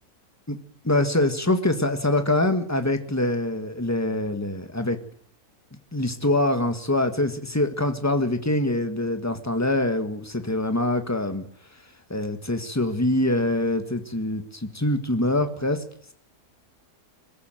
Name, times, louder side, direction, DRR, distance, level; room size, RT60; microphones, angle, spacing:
voice 1, 0.8-5.0 5.9-11.5 12.1-15.8, left 1 dB, 10° left, 8 dB, 1.6 m, -24 dB
21.5 x 14.5 x 9.1 m, 0.62 s
omnidirectional pair, 1.6 m